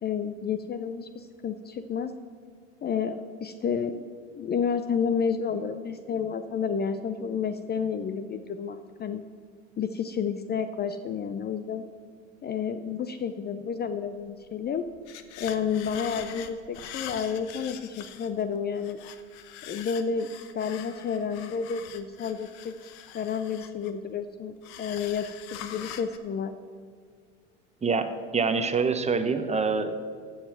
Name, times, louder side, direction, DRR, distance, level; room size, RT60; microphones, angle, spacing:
voice 1, 0.0-2.1 2.8-4.1 4.4-9.2 9.8-11.8 12.4-14.8 15.4-19.0 19.6-26.5, left 6 dB, 30° left, 10 dB, 0.5 m, -30 dB
sound 1, 14.4-14.5 14.8-18.4 18.8-24.1 24.6-26.2, left 10 dB, 65° left, 1.0 m, -43 dB
voice 2, 27.8-29.9, right 4 dB, 20° right, 9 dB, 0.9 m, -26 dB
15.0 x 5.6 x 6.1 m, 2.1 s
hypercardioid pair, 85°, 35 cm